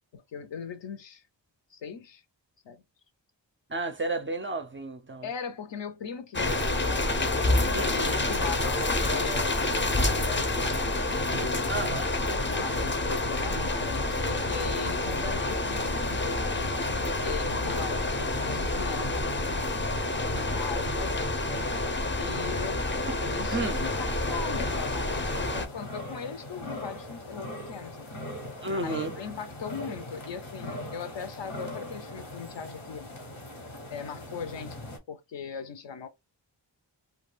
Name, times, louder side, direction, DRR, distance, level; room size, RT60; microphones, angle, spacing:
voice 1, 0.1-1.2 1.7-2.2 2.6-2.8 5.2-7.0 7.2-9.6 10.0-10.7 11.1-11.7 12.5-16.9 17.2-19.3 20.3-21.2 22.2-22.9 23.2-28.1 28.6-33.1 33.9-34.8 35.1-36.1, left 6 dB, 75° left, 0.6 m, -39 dB
voice 2, 3.7-5.3 7.7-8.0 11.7-12.1 17.8-17.9 23.1-23.2 23.5-23.8 28.6-29.1, right 2 dB, 30° right, 0.4 m, -32 dB
sound 1, 6.3-25.7, left 2 dB, 25° left, 0.5 m, -28 dB
sound 2, 23.6-35.0, left 1 dB, 90° left, 1.1 m, -41 dB
2.3 x 2.3 x 3.1 m
wide cardioid pair, 55°, 45 cm